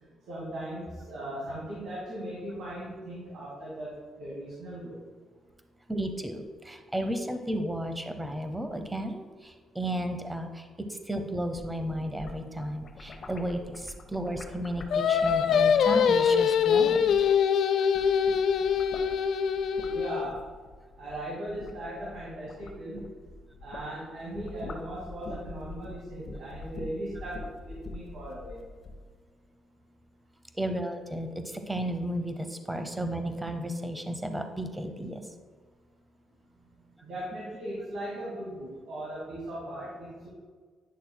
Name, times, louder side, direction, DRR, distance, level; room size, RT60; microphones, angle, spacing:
voice 1, 0.3-5.0 19.8-20.4 21.0-23.0 23.6-28.6 37.0-40.3, right 1 dB, 70° right, -6 dB, 2.1 m, -38 dB
voice 2, 5.9-17.1 30.5-35.2, right 1 dB, 10° right, 7 dB, 0.7 m, -33 dB
sound 1, 11.3-17.6 17.8-23.9 24.2-29.0, left 3 dB, 45° left, 1.0 m, -44 dB
Singing, 14.9-20.3, left 7 dB, 70° left, 0.4 m, -23 dB
10.0 x 6.5 x 2.2 m, 1.5 s
cardioid pair, 90°, 0 cm